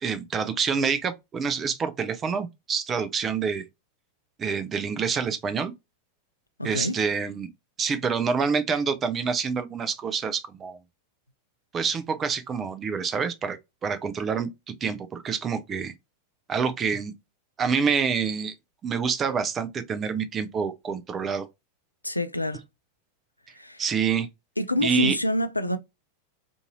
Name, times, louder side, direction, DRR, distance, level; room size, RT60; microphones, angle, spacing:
voice 1, 0.0-3.7 4.4-5.7 6.6-7.5 7.8-10.8 11.7-14.5 14.8-15.9 16.5-17.1 17.6-18.5 18.8-21.5 23.8-24.3 24.8-25.2, right 6 dB, 25° right, 0.5 m, -27 dB
voice 2, 6.6-7.0 22.0-22.6 23.6-23.8 24.6-25.8, left 1 dB, 85° left, 0.3 m, -27 dB
2.6 x 2.6 x 2.7 m
figure-of-eight pair, 90°, 0 cm